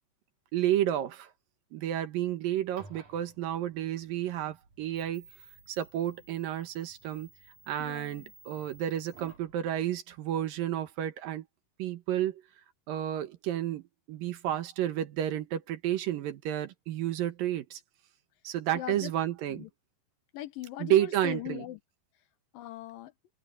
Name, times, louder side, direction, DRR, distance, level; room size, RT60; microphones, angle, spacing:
voice 1, 0.5-1.3 1.7-5.2 5.7-7.3 7.7-11.5 11.8-12.4 12.9-17.8 18.4-19.7 20.8-21.6, right 12 dB, 70° right, 2.9 m, -31 dB
sound 1, 2.6-9.5, right 3 dB, 55° right, 5.7 m, -56 dB
voice 2, 7.8-8.3 18.7-19.1 19.5-19.7 20.3-21.8 22.5-23.1, left 13 dB, 75° left, 2.6 m, -40 dB
open air
omnidirectional pair, 4.3 m